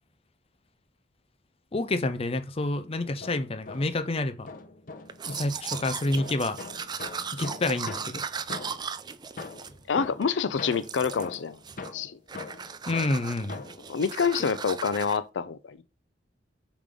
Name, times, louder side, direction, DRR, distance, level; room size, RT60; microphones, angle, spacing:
voice 1, 1.7-4.5 5.3-6.6 7.3-8.2 12.9-13.6, left 2 dB, 35° left, 0.6 m, -28 dB
sound 1, 3.0-4.1 4.5-9.0 9.4-13.9, left 3 dB, 50° left, 1.0 m, -42 dB
Domestic sounds home sounds, 5.1-10.3 10.7-11.4 11.6-12.0 12.3-15.2, right 6 dB, 25° right, 0.4 m, -37 dB
voice 2, 9.9-11.6 11.9-12.2 13.9-15.8, left 6 dB, 85° left, 0.5 m, -27 dB
5.0 x 3.7 x 5.1 m
head